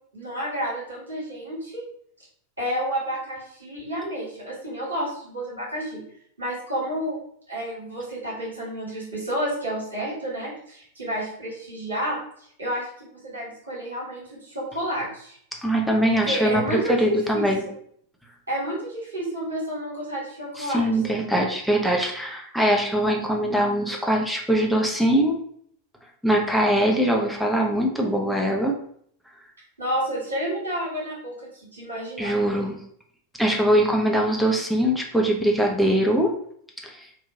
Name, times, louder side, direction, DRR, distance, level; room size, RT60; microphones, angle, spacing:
voice 1, 0.1-1.8 2.6-6.0 6.4-7.2 7.5-12.2 12.6-15.4 16.3-17.7 18.5-21.4 29.8-32.3, equal, 75° right, -6 dB, 1.4 m, -30 dB
voice 2, 15.6-17.6 20.6-25.3 26.2-28.7 32.2-32.8 33.4-36.3 36.8-37.1, right 1 dB, ahead, 0 dB, 0.5 m, -22 dB
2.8 x 2.2 x 2.6 m, 0.65 s
figure-of-eight pair, 90°, 0 cm